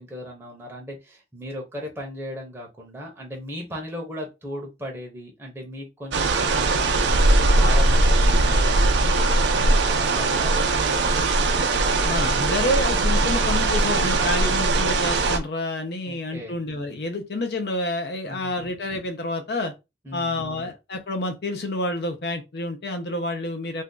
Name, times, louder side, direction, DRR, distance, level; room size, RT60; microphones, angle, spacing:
voice 1, 0.0-11.3 16.0-16.6 18.2-18.7 20.0-20.7, equal, 15° right, 0.7 m, -37 dB
sound 1, 6.1-15.4, right 2 dB, 85° right, 0.5 m, -20 dB
voice 2, 12.0-19.7 20.1-23.8, left 1 dB, 65° left, 0.5 m, -28 dB
2.6 x 2.3 x 3.6 m
head